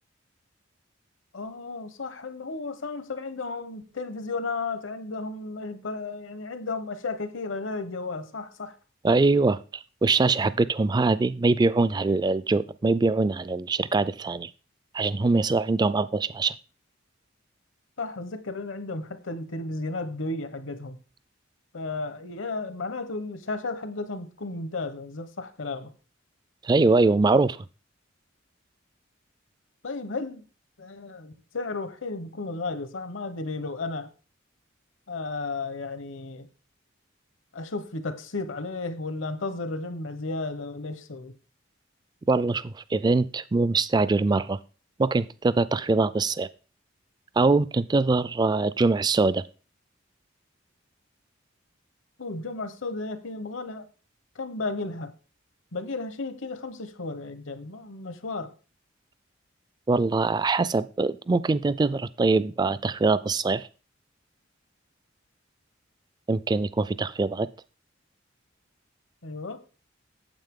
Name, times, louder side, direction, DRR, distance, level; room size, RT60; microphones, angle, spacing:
voice 1, 1.3-8.7 18.0-21.0 21.7-25.9 29.8-30.4 30.8-34.1 35.1-36.5 37.5-41.3 52.2-53.8 54.4-55.1 55.7-58.5 69.2-69.6, left 3 dB, 70° left, 1.0 m, -34 dB
voice 2, 9.0-9.6 10.0-14.5 14.9-16.5 26.6-27.6 42.3-44.6 45.0-46.5 47.4-49.4 59.9-63.7 66.3-67.5, right 3 dB, 20° right, 0.3 m, -23 dB
9.0 x 7.5 x 3.7 m
head